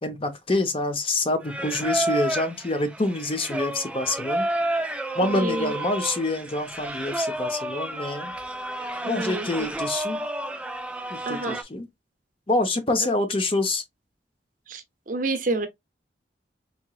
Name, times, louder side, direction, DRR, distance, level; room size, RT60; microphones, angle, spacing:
voice 1, 0.0-4.5 5.1-8.3 9.1-10.2 11.1-11.9 12.5-13.8, left 2 dB, 30° left, 0.6 m, -26 dB
Singing, 1.4-11.6, right 1 dB, 5° right, 0.4 m, -31 dB
voice 2, 5.3-5.7 9.0-9.7 11.3-11.6 14.7-15.7, right 2 dB, 45° right, 0.7 m, -29 dB
4.2 x 2.9 x 2.3 m
head